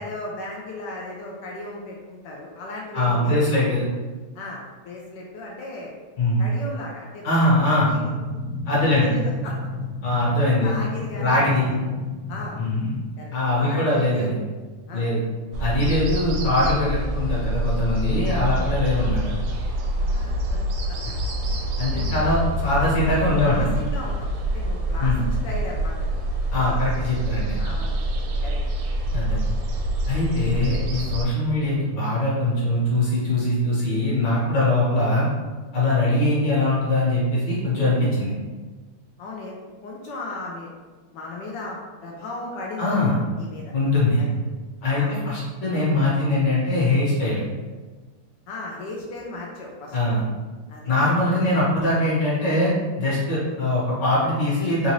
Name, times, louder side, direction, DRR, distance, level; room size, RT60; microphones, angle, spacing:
voice 1, 0.0-3.5 4.3-5.9 6.4-8.1 8.8-9.6 10.6-11.9 12.3-12.6 13.2-13.3 13.6-14.4 14.9-15.1 18.9-19.2 20.0-20.6 20.9-21.0 21.5-22.0 23.1-25.2 25.4-26.2 26.5-27.1 27.6-28.6 29.3-29.5 30.5-30.7 39.2-40.7 41.1-43.7 44.2-44.3 44.9-45.2 48.5-50.0 50.7-50.9, left 2 dB, 75° left, -2 dB, 1.0 m, -36 dB
voice 2, 2.9-3.9 6.2-6.4 7.2-8.0 8.7-9.1 10.0-10.7 11.2-11.7 12.6-12.9 13.3-14.3 14.9-15.2 15.6-19.2 21.8-23.6 25.0-25.2 26.5-27.6 29.1-29.4 30.1-35.3 35.7-38.3 42.8-43.2 43.7-44.2 44.8-47.4 49.9-50.2 50.9-52.7 53.0-54.9, left 2 dB, 55° left, -7 dB, 1.8 m, -22 dB
sound 1, 7.7-13.0, left 2 dB, 70° right, 1.1 m, -32 dB
sound 2, 15.5-31.2, right 1 dB, 85° right, 1.5 m, -26 dB
3.9 x 2.5 x 3.0 m, 1.3 s
omnidirectional pair, 2.4 m